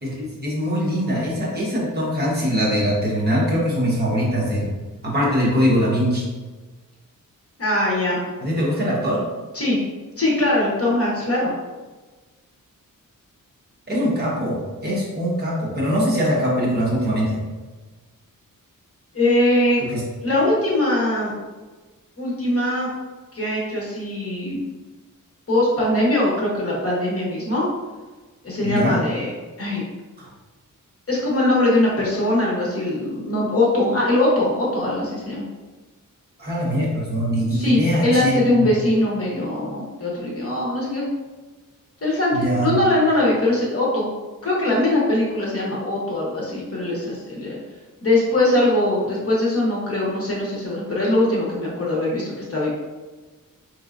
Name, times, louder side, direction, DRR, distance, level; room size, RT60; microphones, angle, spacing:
voice 1, 0.0-4.7 5.0-6.2 8.4-9.2 13.9-17.4 19.9-20.0 28.6-29.0 36.4-38.7 42.3-42.7, equal, 30° right, -6 dB, 1.0 m, -22 dB
voice 2, 7.6-8.2 9.5-9.8 10.2-11.5 19.1-19.8 20.2-21.3 22.2-22.9 23.3-24.6 25.5-27.7 28.4-29.3 29.6-29.8 31.1-35.4 37.5-41.0 42.0-44.1 44.4-47.6 48.0-52.7, left 1 dB, 45° left, -4 dB, 1.0 m, -21 dB
4.6 x 3.1 x 2.5 m, 1.3 s
wide cardioid pair, 160°, 34 cm